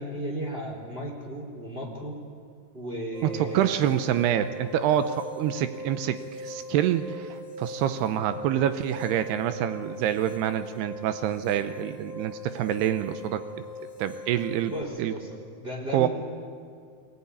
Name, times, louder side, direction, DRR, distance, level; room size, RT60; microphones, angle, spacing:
voice 1, 0.0-2.2 2.7-3.7 14.7-16.1, right 1 dB, 15° right, -2 dB, 3.2 m, -35 dB
sound 1, 3.1-14.8, left 1 dB, 20° left, 4.1 m, -41 dB
voice 2, 3.3-13.4 14.0-14.7 15.0-15.1 15.9-16.1, right 11 dB, 85° right, 10 dB, 2.8 m, -26 dB
21.5 x 19.0 x 9.9 m, 2.2 s
omnidirectional pair, 4.7 m